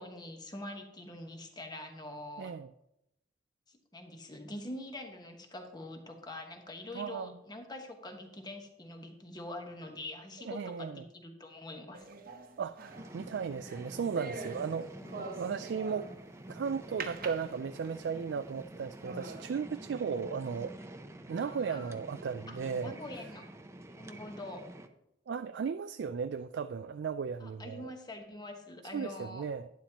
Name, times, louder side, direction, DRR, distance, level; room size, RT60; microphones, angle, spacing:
voice 1, 0.0-2.6 3.7-12.1 14.9-15.3 21.4-22.0 22.5-23.4 23.9-24.7 27.4-29.5, left 1 dB, 25° left, 4 dB, 1.3 m, -45 dB
voice 2, 2.4-2.7 6.9-7.3 10.5-11.0 12.6-16.1 16.5-20.7 21.3-23.0 25.3-27.9 28.9-29.7, right 6 dB, 80° right, 10 dB, 0.4 m, -36 dB
sound 1, 11.9-16.3 17.0-18.1 18.6-18.7 19.0-19.5, right 3 dB, 55° right, 1.0 m, -44 dB
sound 2, 12.9-24.9, right 1 dB, 15° right, 0.6 m, -48 dB
11.5 x 10.5 x 3.0 m, 0.84 s
head